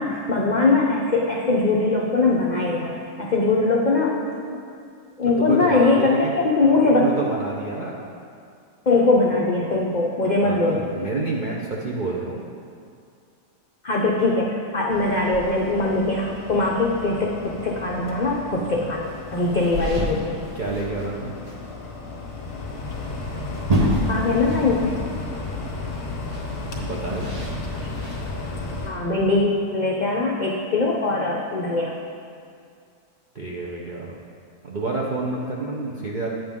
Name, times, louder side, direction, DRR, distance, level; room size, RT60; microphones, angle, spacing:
voice 1, 0.0-2.9 3.2-4.6 5.2-7.2 8.9-10.8 13.8-20.4 24.1-25.0 28.9-31.9, left 3 dB, 90° left, -2 dB, 0.4 m, -21 dB
voice 2, 5.4-6.4 6.9-8.0 10.4-12.4 20.5-21.3 26.6-27.3 33.3-34.2 34.6-36.3, right 3 dB, 65° right, -4 dB, 0.4 m, -29 dB
sound 1, 14.9-28.9, left 3 dB, 65° left, 1.8 m, -34 dB
sound 2, 19.1-21.1 21.4-21.5 21.9-22.0 23.4-25.1 25.3-25.4 26.3-28.3, equal, 30° right, 0.8 m, -28 dB
8.7 x 7.8 x 3.6 m, 2.3 s
omnidirectional pair, 1.7 m